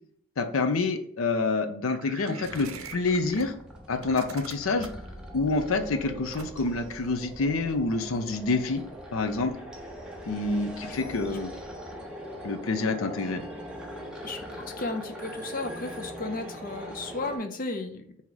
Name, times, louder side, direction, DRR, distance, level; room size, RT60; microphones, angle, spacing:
voice 1, 0.4-3.5 3.9-4.9 5.3-8.8 9.1-9.5 10.3-11.5 12.4-13.4, left 3 dB, 85° left, 7 dB, 0.6 m, -27 dB
sound 1, 1.9-3.5 3.9-5.1 6.3-6.8, right 6 dB, 90° right, 0.5 m, -43 dB
sound 2, 2.4-17.4, equal, 5° right, 0.6 m, -41 dB
voice 2, 10.8-11.1 14.2-18.2, left 2 dB, 40° left, 6 dB, 0.5 m, -35 dB
4.6 x 2.8 x 3.9 m, 0.67 s
head